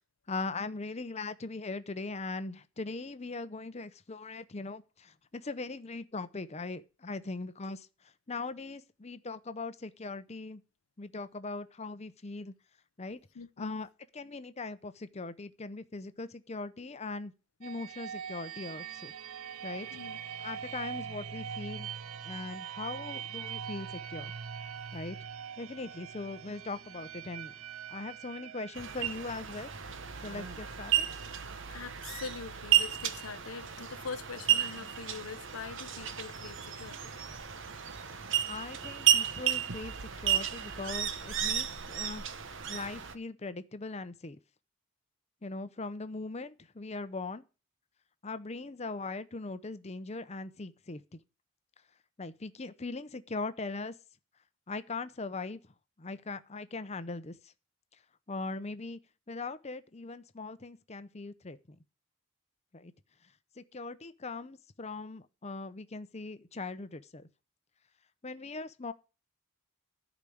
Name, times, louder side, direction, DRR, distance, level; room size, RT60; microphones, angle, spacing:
voice 1, 0.3-7.9 8.3-10.6 11.0-12.5 13.0-13.2 13.6-17.3 17.6-19.1 19.6-19.9 20.4-21.9 22.2-24.3 24.9-25.2 25.6-27.5 27.9-29.7 30.2-31.1 38.5-42.2 42.7-44.4 45.4-47.4 48.2-51.2 52.2-53.9 54.7-55.6 56.0-57.4 58.3-59.0 59.3-61.8 62.7-62.9 63.6-67.3 68.2-68.9, left 3 dB, 30° left, 0.7 m, -40 dB
voice 2, 13.3-13.7 19.9-20.2 31.7-37.1, left 5 dB, 85° left, 0.7 m, -43 dB
sound 1, 17.6-33.2, right 8 dB, 80° right, 0.6 m, -43 dB
sound 2, 28.8-43.1, right 10 dB, 60° right, 1.0 m, -32 dB
12.0 x 5.1 x 8.4 m
head